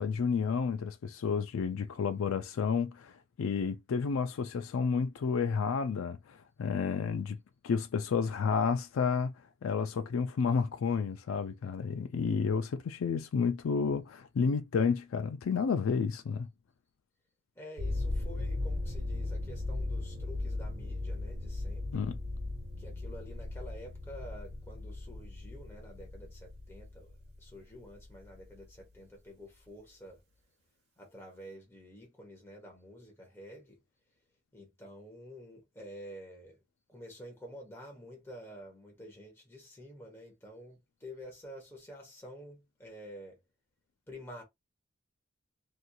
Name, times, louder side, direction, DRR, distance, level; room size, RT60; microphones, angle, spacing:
voice 1, 0.0-7.4 7.6-9.3 9.6-16.5 21.9-22.2, left 5 dB, 90° left, 0.4 m, -31 dB
voice 2, 17.5-22.1 22.8-30.2 31.0-33.8 34.5-36.6 36.9-43.4 44.1-44.4, equal, 10° left, 0.9 m, -49 dB
sound 1, 17.8-28.6, left 2 dB, 55° right, 1.2 m, -37 dB
2.9 x 2.6 x 2.3 m
head